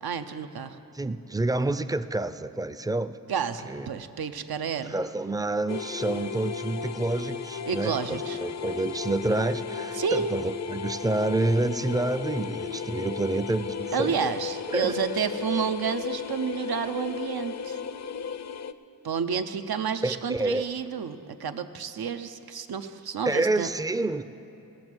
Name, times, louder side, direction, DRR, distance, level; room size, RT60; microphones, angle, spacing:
voice 1, 0.0-0.8 3.3-4.9 7.6-8.4 9.9-10.4 13.9-17.8 19.0-23.7, right 7 dB, 90° right, 9 dB, 0.6 m, -30 dB
voice 2, 0.9-3.2 3.7-3.9 4.9-14.3 14.7-15.0 20.0-20.7 23.2-24.2, right 2 dB, 10° right, 12 dB, 0.3 m, -28 dB
sound 1, 5.7-18.7, left 6 dB, 50° left, 0.4 m, -34 dB
18.5 x 7.4 x 6.1 m, 3.0 s
wide cardioid pair, 85°, 36 cm